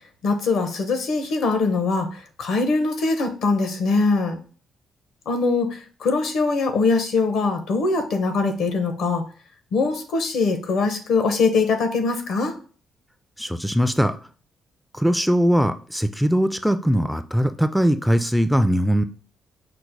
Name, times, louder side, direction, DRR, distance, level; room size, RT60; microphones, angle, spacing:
voice 1, 0.2-4.4 5.3-9.2 9.7-12.5, left 3 dB, 75° left, 7 dB, 0.9 m, -22 dB
voice 2, 13.4-14.1 14.9-19.0, equal, ahead, 9 dB, 0.3 m, -20 dB
5.1 x 2.1 x 4.6 m, 0.40 s
cardioid pair, 90°, 0 cm